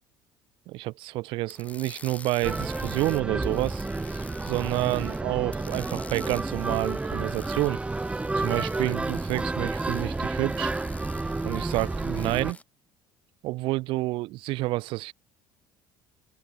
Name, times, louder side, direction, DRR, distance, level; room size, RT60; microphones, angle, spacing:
voice 1, 0.7-3.9 4.4-7.8 8.3-10.7 11.4-12.6 13.4-15.1, right 20 dB, 70° right, 1.9 m, -29 dB
sound 1, 1.5-5.2 5.5-12.6, left 3 dB, 15° left, 6.0 m, -48 dB
sound 2, 2.4-12.5, right 2 dB, 10° right, 3.4 m, -31 dB
cardioid pair, 120°, 9 cm